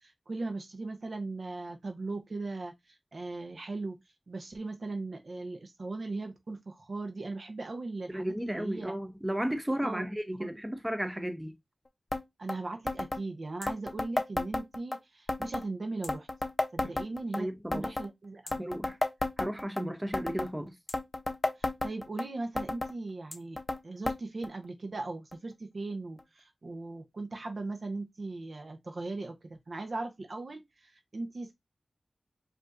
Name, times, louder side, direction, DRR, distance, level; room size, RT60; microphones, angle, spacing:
voice 1, 0.0-2.7 3.1-4.0 4.3-8.9 9.8-10.0 10.4-10.5 12.4-16.3 16.7-18.6 21.6-23.6 23.8-31.5, right 3 dB, 70° right, 0.7 m, -38 dB
voice 2, 8.1-11.5 16.8-17.0 17.4-17.9 18.6-19.0 19.4-20.8, equal, 15° right, 0.6 m, -34 dB
sound 1, 12.1-12.2 12.5-12.6 12.9-13.2 13.6-15.0 15.3-15.7 16.0-17.4 17.7-18.1 18.5-19.8 20.1-20.5 20.9-22.2 22.6-22.9 23.3-23.8 24.1-24.2 24.4-24.5 25.3-25.4 26.2-26.3, left 2 dB, 40° left, 0.5 m, -32 dB
4.9 x 2.6 x 2.4 m
cardioid pair, 45°, 0 cm